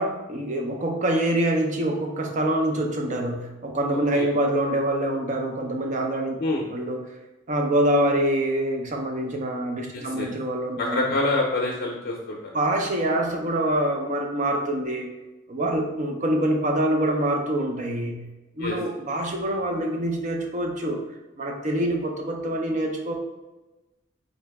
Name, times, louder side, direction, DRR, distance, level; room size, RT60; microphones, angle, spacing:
voice 1, 0.0-6.3 6.7-7.0 7.5-11.0 12.5-15.1 15.5-18.2 18.6-21.0 21.4-23.1, right 1 dB, 40° right, 3 dB, 0.6 m, -25 dB
voice 2, 3.9-4.3 6.4-6.7 9.9-10.3 10.8-12.5 18.6-18.8, left 2 dB, 55° left, -1 dB, 0.6 m, -27 dB
3.9 x 3.0 x 3.4 m, 1.1 s
head